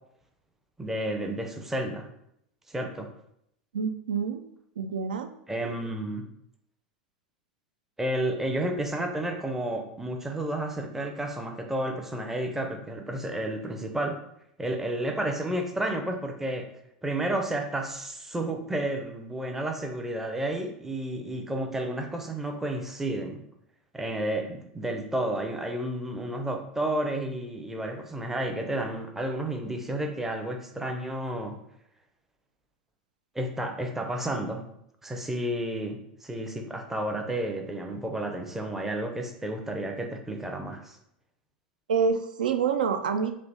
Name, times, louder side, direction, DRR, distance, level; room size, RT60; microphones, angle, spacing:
voice 1, 0.8-2.1 2.7-3.1 5.5-6.3 8.0-14.2 14.6-16.7 17.0-23.4 23.9-31.6 33.3-34.6 35.0-41.0, right 1 dB, 5° right, 3 dB, 0.6 m, -31 dB
voice 2, 3.7-5.3 41.9-43.3, right 6 dB, 70° right, 7 dB, 0.3 m, -27 dB
3.2 x 2.5 x 3.9 m, 0.75 s
figure-of-eight pair, 85°, 5 cm